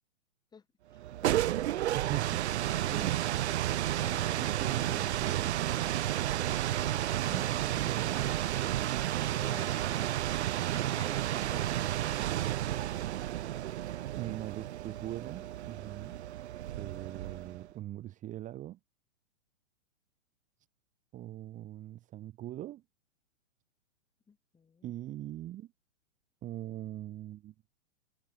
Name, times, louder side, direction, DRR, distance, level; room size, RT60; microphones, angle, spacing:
sound 1, 0.9-17.7, right 13 dB, 55° right, 1.2 m, -32 dB
voice 1, 1.9-2.4 2.9-3.3 4.4-6.1 7.3-8.3 14.2-16.1 16.8-18.8 21.1-22.8 24.8-25.7 26.4-27.5, right 14 dB, 20° right, 1.8 m, -41 dB
voice 2, 3.9-4.7 6.5-7.7 9.2-10.5 10.7-11.9 24.3-24.9, left 5 dB, 10° left, 4.4 m, -52 dB
hypercardioid pair, 145°, 39 cm